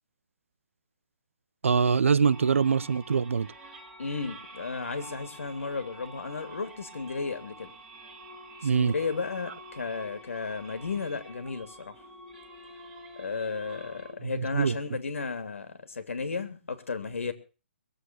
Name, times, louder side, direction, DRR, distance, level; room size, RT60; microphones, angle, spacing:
voice 1, 1.6-3.5 8.6-8.9 14.2-14.8, right 6 dB, 75° right, 0.7 m, -24 dB
sound 1, 2.3-14.1, right 1 dB, 10° right, 1.8 m, -48 dB
voice 2, 4.0-7.7 8.6-11.9 13.2-17.3, left 4 dB, 85° left, 3.1 m, -34 dB
22.5 x 8.3 x 6.2 m
hypercardioid pair, 175°, 7 cm